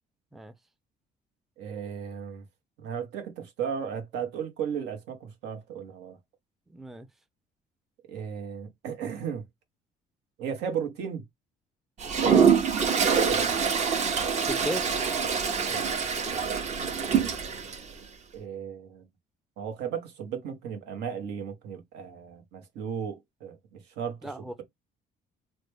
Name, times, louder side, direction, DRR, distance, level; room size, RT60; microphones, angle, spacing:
voice 1, 1.6-2.4 2.8-6.2 8.1-9.4 10.4-11.2 13.3-13.5 15.7-15.9 18.3-19.1 19.6-24.6, right 7 dB, 90° right, 1.0 m, -35 dB
voice 2, 6.7-7.1 12.2-12.5 14.5-14.8 24.2-24.6, right 1 dB, ahead, 0.4 m, -34 dB
Toilet flush, 12.0-17.8, right 6 dB, 45° right, 0.8 m, -25 dB
3.2 x 2.2 x 3.1 m
cardioid pair, 110°, 17 cm